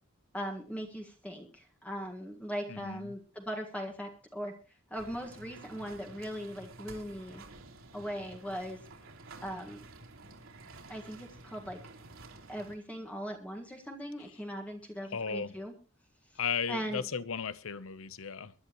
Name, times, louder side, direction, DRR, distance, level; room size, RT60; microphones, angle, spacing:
voice 1, 0.3-4.5 4.9-7.4 7.9-8.8 9.4-9.8 10.9-11.8 12.5-15.7 16.7-17.0, equal, 5° left, 1 dB, 1.6 m, -39 dB
voice 2, 2.7-3.1 15.0-15.5 16.4-18.5, left 6 dB, 75° left, 16 dB, 0.8 m, -35 dB
sound 1, 4.9-12.7, right 2 dB, 75° right, 3.3 m, -51 dB
22.5 x 11.0 x 3.0 m, 0.34 s
head